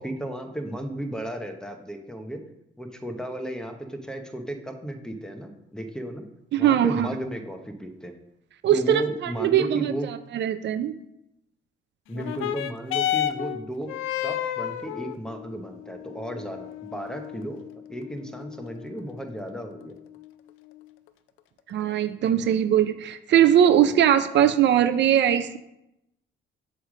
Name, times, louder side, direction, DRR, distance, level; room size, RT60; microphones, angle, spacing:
voice 1, 0.0-2.4 2.8-6.2 6.6-8.1 8.7-10.1 12.1-13.9 14.2-17.6 17.9-20.0, right 1 dB, 5° left, 5 dB, 0.9 m, -34 dB
voice 2, 6.5-7.1 8.6-10.9 21.7-25.6, right 10 dB, 65° right, 12 dB, 0.4 m, -21 dB
sound 1, 12.1-21.1 21.9-22.0, left 11 dB, 90° left, 0.5 m, -33 dB
7.7 x 3.3 x 6.2 m, 0.86 s
cardioid pair, 90°, 20 cm